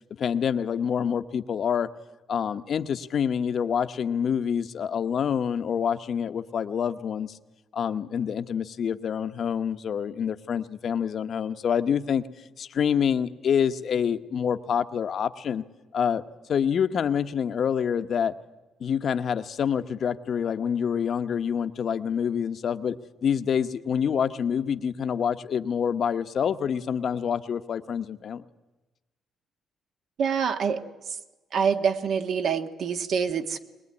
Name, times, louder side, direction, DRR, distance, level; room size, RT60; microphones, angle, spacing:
voice 1, 0.2-1.9 2.3-7.4 7.7-12.2 12.6-15.6 15.9-16.2 16.5-18.3 18.8-23.0 23.2-28.4, left 7 dB, 50° left, 10 dB, 1.0 m, -27 dB
voice 2, 30.2-30.8 31.5-33.6, right 6 dB, 60° right, 7 dB, 1.5 m, -25 dB
22.0 x 20.0 x 9.7 m, 1.1 s
cardioid pair, 130°, 0 cm